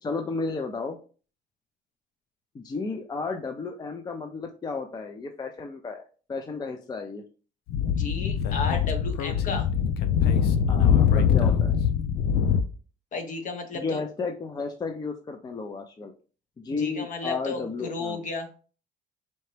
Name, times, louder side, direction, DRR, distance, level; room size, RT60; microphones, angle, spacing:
voice 1, 0.0-1.0 2.5-7.2 10.7-11.8 13.7-16.1 16.6-18.2, left 4 dB, 25° left, 5 dB, 0.5 m, -33 dB
Speech / Wind, 7.7-12.6, left 8 dB, 75° left, 0.5 m, -23 dB
voice 2, 7.9-9.7 13.1-14.0 16.8-18.5, left 4 dB, 50° left, 6 dB, 1.0 m, -33 dB
4.3 x 2.8 x 3.2 m, 0.37 s
cardioid pair, 110°, 17 cm